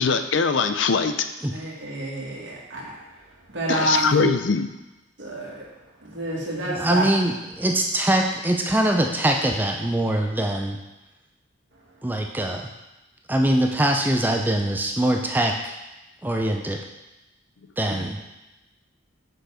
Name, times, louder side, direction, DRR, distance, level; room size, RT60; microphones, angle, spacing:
voice 1, 0.0-1.2 3.7-4.7, left 5 dB, 70° left, 9 dB, 0.5 m, -22 dB
voice 2, 1.5-3.0 3.5-4.3 5.2-5.7 6.0-7.0 17.9-18.0, right 2 dB, 70° right, -4 dB, 1.8 m, -28 dB
voice 3, 6.7-10.8 12.0-12.7 13.3-15.7 16.2-16.8 17.8-18.2, right 1 dB, 10° right, 2 dB, 0.4 m, -23 dB
6.3 x 5.2 x 5.0 m, 1.0 s
head